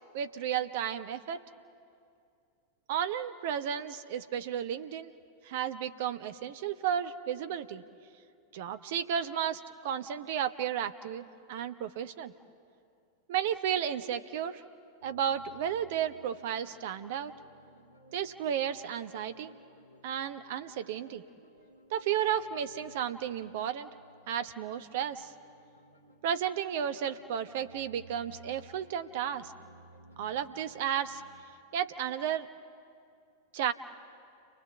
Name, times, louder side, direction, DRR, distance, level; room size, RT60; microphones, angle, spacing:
voice 1, 0.1-1.4 2.9-5.1 5.4-7.8 8.5-12.3 13.3-14.6 15.0-17.3 18.1-19.5 20.0-21.2 21.9-23.9 24.3-25.3 26.2-29.5 30.2-31.2 31.7-32.5 33.5-33.7, right 9 dB, 50° right, 11 dB, 1.0 m, -33 dB
sound 1, 15.0-31.4, right 1 dB, 90° right, 2.3 m, -58 dB
30.0 x 23.5 x 7.3 m, 2.4 s
figure-of-eight pair, 90°, 0 cm